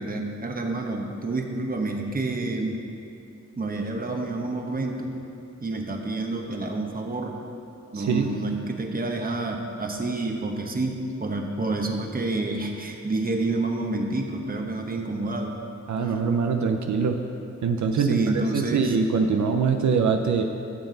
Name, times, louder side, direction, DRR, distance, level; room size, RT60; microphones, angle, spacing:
voice 1, 0.0-2.8 3.6-5.2 5.6-7.4 7.9-15.6 18.0-18.9, right 2 dB, 30° right, 2 dB, 1.0 m, -28 dB
voice 2, 7.9-8.3 15.9-17.2 17.6-20.4, right 5 dB, 75° right, 4 dB, 0.6 m, -23 dB
13.0 x 8.0 x 4.0 m, 2.7 s
wide cardioid pair, 125°, 29 cm